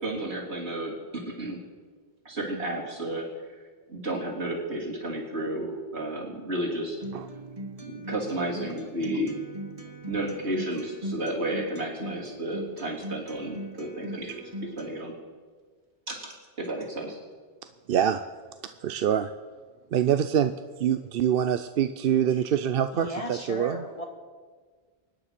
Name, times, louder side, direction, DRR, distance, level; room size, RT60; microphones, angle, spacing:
voice 1, 0.0-1.6 2.3-3.6 3.9-7.0 7.8-9.3 10.1-15.1 16.1-16.2 16.6-17.2, right 1 dB, 90° right, -3 dB, 3.8 m, -32 dB
Acoustic guitar, 7.0-15.0, right 1 dB, 35° right, 1.3 m, -40 dB
voice 2, 17.9-18.2 18.8-19.3 19.9-20.5 20.8-23.8, right 9 dB, 65° right, 10 dB, 0.7 m, -25 dB
voice 3, 22.9-24.1, left 1 dB, 35° left, 4 dB, 1.7 m, -35 dB
24.5 x 9.9 x 5.9 m, 1.5 s
omnidirectional pair, 1.1 m